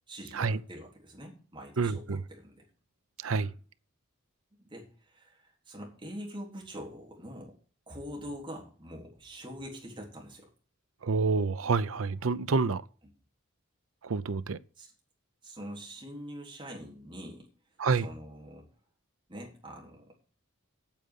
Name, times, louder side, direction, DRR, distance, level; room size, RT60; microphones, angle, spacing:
voice 1, 0.1-2.7 3.3-3.5 4.6-7.5 7.9-10.5 13.0-13.1 14.8-14.9 15.4-17.5 17.9-18.7 19.3-20.1, equal, 25° right, 3.6 m, -44 dB
voice 2, 1.8-2.2 3.2-3.5 11.0-12.8 14.0-14.6 17.8-18.1, right 4 dB, 75° right, 0.6 m, -28 dB
9.1 x 6.6 x 8.1 m
head